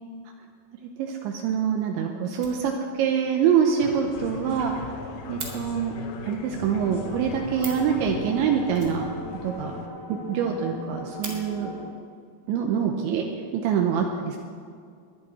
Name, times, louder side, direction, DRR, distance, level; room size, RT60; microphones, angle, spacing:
voice 1, 1.0-2.7 3.0-4.7 5.3-5.9 6.3-9.1 9.4-9.7 10.1-11.7 12.5-13.2 13.5-14.4, right 7 dB, 80° right, 2 dB, 3.1 m, -25 dB
Fire, 2.3-3.1 3.4-3.5 3.9-4.0 4.2-4.3 4.6-5.5 7.3-7.4 7.5-7.9 8.7-9.6 9.9-10.0 10.3-10.4 10.8-11.3 12.4-12.5 13.1-13.7, right 3 dB, 45° right, 1.0 m, -41 dB
sound 1, 3.8-9.9, left 5 dB, 90° left, 1.8 m, -39 dB
sound 2, 6.7-11.9, left 1 dB, 20° left, 1.0 m, -38 dB
20.5 x 11.5 x 4.3 m, 2.3 s
omnidirectional pair, 5.4 m